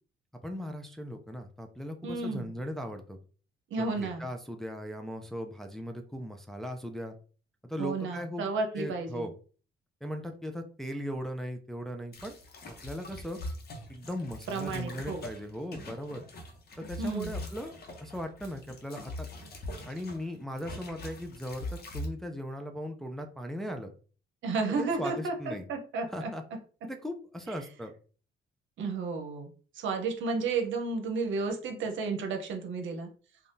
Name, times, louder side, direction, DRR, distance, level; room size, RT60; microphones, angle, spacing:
voice 1, 0.4-3.2 4.0-7.2 7.6-8.5 8.7-9.3 10.0-12.3 12.7-13.4 13.9-16.2 16.8-19.3 19.9-23.9 24.8-25.7 26.1-26.4 26.8-27.9, equal, ahead, 4 dB, 0.4 m, -38 dB
voice 2, 2.0-2.5 3.7-4.2 7.8-9.3 14.5-15.2 17.0-17.3 24.4-26.3 28.8-33.1, right 4 dB, 75° right, 4 dB, 0.8 m, -32 dB
sound 1, 12.1-20.3 20.6-22.1, left 1 dB, 50° left, 0.8 m, -42 dB
3.4 x 2.3 x 2.6 m, 0.40 s
cardioid pair, 90°, 20 cm